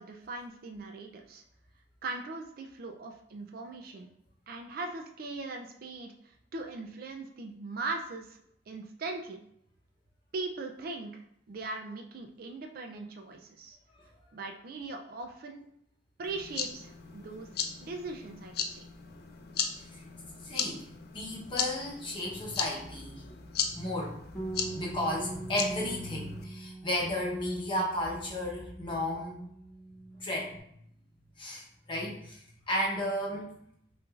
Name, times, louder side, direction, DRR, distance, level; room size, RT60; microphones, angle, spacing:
voice 1, 0.0-1.4 2.0-4.1 4.5-8.4 8.7-9.4 10.3-11.1 11.5-13.8 14.3-15.6 16.2-17.5 17.8-18.8, right 3 dB, 55° right, 3 dB, 0.4 m, -40 dB
sound 1, 16.2-26.4, left 7 dB, 60° left, 0.4 m, -37 dB
voice 2, 20.4-20.8 21.1-23.3 23.7-24.2 24.6-29.4 30.2-30.6 31.4-33.5, left 1 dB, 30° left, -3 dB, 0.9 m, -33 dB
Bass guitar, 24.4-30.6, right 2 dB, 10° left, 0.5 m, -43 dB
5.9 x 2.5 x 2.4 m, 0.72 s
head